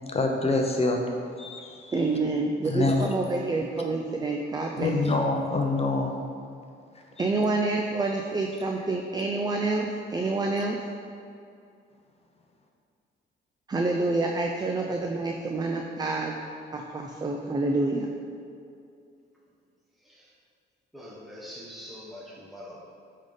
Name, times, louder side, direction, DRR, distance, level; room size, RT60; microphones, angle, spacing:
voice 1, 0.1-1.0 1.4-2.0 2.6-3.1 4.8-6.1 7.2-7.3, left 3 dB, 30° left, 2 dB, 0.8 m, -26 dB
voice 2, 1.9-5.2 7.2-10.8 13.7-16.4 16.7-18.1, right 3 dB, 20° right, 1 dB, 0.5 m, -28 dB
voice 3, 20.9-22.8, equal, ahead, -5 dB, 1.2 m, -43 dB
8.8 x 3.7 x 3.8 m, 2.5 s
cardioid pair, 90°, 20 cm